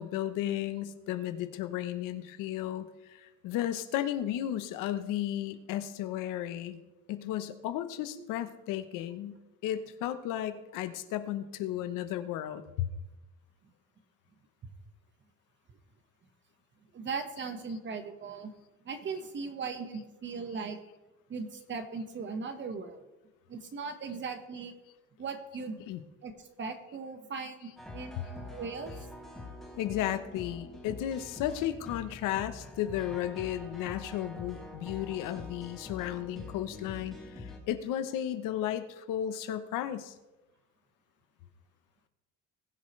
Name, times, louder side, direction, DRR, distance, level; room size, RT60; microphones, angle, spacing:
voice 1, 0.0-6.8 7.1-12.9 25.9-26.0 28.2-28.3 29.8-40.1, left 12 dB, 80° left, 10 dB, 1.0 m, -34 dB
voice 2, 16.9-18.5 18.8-20.8 21.3-23.0 23.5-24.7 25.2-25.8 26.2-26.3 26.6-28.9, right 4 dB, 35° right, 7 dB, 1.4 m, -38 dB
sound 1, 27.8-37.6, left 2 dB, ahead, 2.9 m, -45 dB
20.5 x 7.5 x 3.3 m, 1.0 s
cardioid pair, 125°, 31 cm